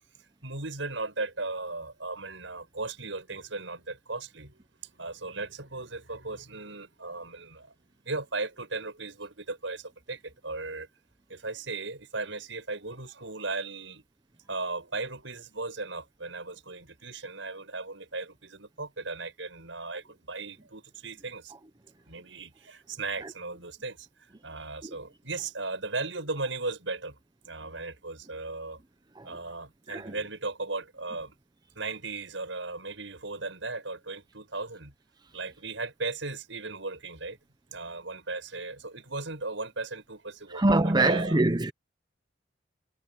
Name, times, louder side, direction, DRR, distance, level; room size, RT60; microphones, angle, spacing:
voice 1, 0.4-4.6 5.0-7.7 8.0-10.9 11.3-14.0 14.5-21.5 22.1-24.1 24.4-27.2 27.5-28.8 29.2-31.3 31.7-34.9 35.3-37.4 37.7-41.4, right 3 dB, 85° right, 6.3 m, -37 dB
voice 2, 40.5-41.7, right 2 dB, 25° right, 0.8 m, -24 dB
head